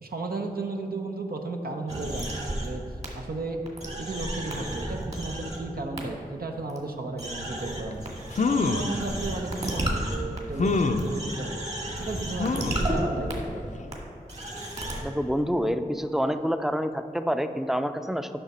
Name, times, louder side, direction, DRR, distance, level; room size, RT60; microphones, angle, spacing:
voice 1, 0.0-2.8 3.2-3.6 4.0-8.1 8.5-11.7 12.0-13.8, right 3 dB, 75° right, 3 dB, 0.7 m, -34 dB
sound 1, 1.9-2.7 3.0-3.1 3.7-5.6 6.0-6.1 6.7-6.8 7.2-13.0 13.3-13.4 13.9-14.0 14.3-15.0, right 1 dB, 45° right, 1.9 m, -33 dB
sound 2, 7.9-8.0 8.3-8.9 9.6-9.7 10.6-11.1 12.4-12.9 13.4-13.5 13.8-13.9, left 3 dB, 55° left, 0.5 m, -25 dB
voice 2, 15.0-18.3, equal, ahead, 9 dB, 0.5 m, -27 dB
8.8 x 5.9 x 4.2 m, 2.9 s
cardioid pair, 40°, 16 cm